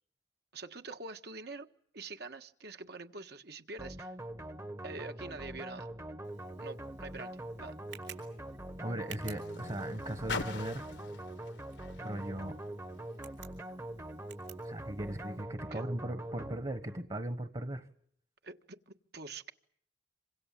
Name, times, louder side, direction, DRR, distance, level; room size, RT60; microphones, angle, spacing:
voice 1, 0.5-1.7 1.9-4.1 4.8-5.9 6.6-7.8 15.7-15.8 18.4-19.5, right 3 dB, 60° right, 7 dB, 1.6 m, -45 dB
sound 1, 3.8-17.1, right 1 dB, 15° right, 1.0 m, -44 dB
Tick, 6.2-15.4, right 9 dB, 85° right, 6.0 m, -56 dB
Car, 6.7-13.3 14.1-14.2, left 4 dB, 75° left, 1.3 m, -46 dB
voice 2, 8.8-10.9 12.0-12.6 14.6-17.9, right 1 dB, 30° right, 9 dB, 1.4 m, -38 dB
27.0 x 26.0 x 7.6 m, 0.64 s
head